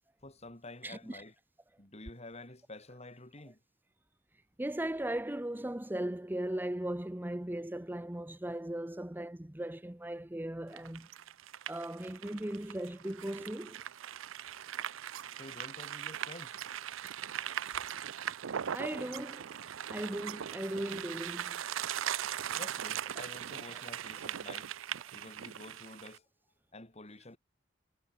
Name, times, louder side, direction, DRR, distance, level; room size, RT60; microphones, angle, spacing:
voice 1, 0.2-1.3 1.8-3.6 15.3-16.6 22.5-24.8 25.1-26.3 26.7-27.4, left 2 dB, 35° left, 3.2 m, -49 dB
voice 2, 0.8-1.2 4.6-11.1 11.7-13.8 18.7-19.6 19.9-21.6, right 1 dB, 10° right, 0.7 m, -38 dB
sound 1, 10.7-26.2, right 10 dB, 90° right, 0.5 m, -40 dB
head